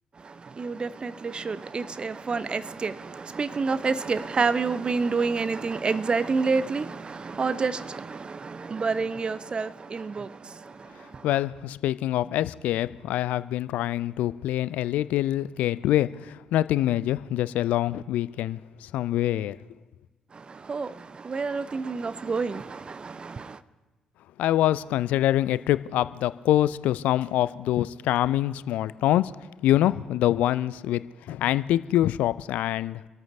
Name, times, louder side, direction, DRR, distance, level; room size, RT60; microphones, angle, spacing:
voice 1, 0.2-11.3 20.3-23.6, right 4 dB, 35° right, 0.6 m, -29 dB
voice 2, 11.2-19.6 24.4-29.3 29.6-33.0, left 13 dB, 65° left, 0.3 m, -25 dB
27.5 x 13.5 x 2.7 m
figure-of-eight pair, 40°, 3 cm